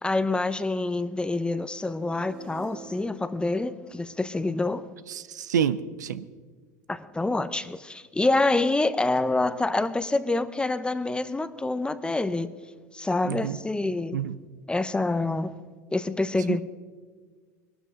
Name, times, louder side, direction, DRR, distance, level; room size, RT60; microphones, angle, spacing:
voice 1, 0.0-4.8 6.9-12.5 12.9-14.2 14.7-15.5 15.9-16.6, left 2 dB, 10° left, 0.8 m, -26 dB
sound 1, 1.4-5.5, right 3 dB, 55° right, 4.4 m, -49 dB
voice 2, 5.1-6.2 13.2-13.6 14.1-14.4 16.5-16.6, right 8 dB, 90° right, 0.6 m, -28 dB
21.5 x 12.5 x 3.7 m
hypercardioid pair, 85°, 9 cm